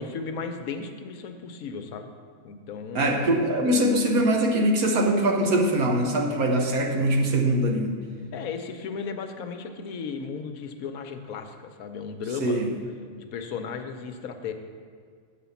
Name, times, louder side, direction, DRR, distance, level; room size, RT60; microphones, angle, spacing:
voice 1, 0.0-2.1 2.4-3.3 8.3-12.7 13.3-14.5, left 5 dB, 80° left, 6 dB, 1.1 m, -35 dB
voice 2, 2.9-8.0 12.4-12.7, right 1 dB, 85° right, 2 dB, 1.5 m, -22 dB
8.1 x 5.1 x 7.0 m, 2.1 s
omnidirectional pair, 1.5 m